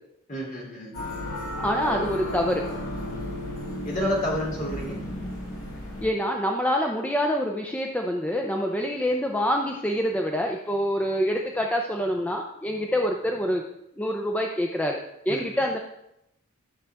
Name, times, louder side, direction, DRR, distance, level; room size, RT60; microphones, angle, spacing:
voice 1, 0.3-0.9 1.8-2.2 3.8-5.0 15.3-15.5, equal, 40° left, -3 dB, 3.2 m, -30 dB
sound 1, 0.9-6.1, left 1 dB, 70° left, 3.4 m, -34 dB
voice 2, 1.6-2.6 6.0-13.6 14.0-15.0 15.3-15.8, equal, 5° left, 1 dB, 0.5 m, -26 dB
12.5 x 6.4 x 3.6 m, 0.83 s
head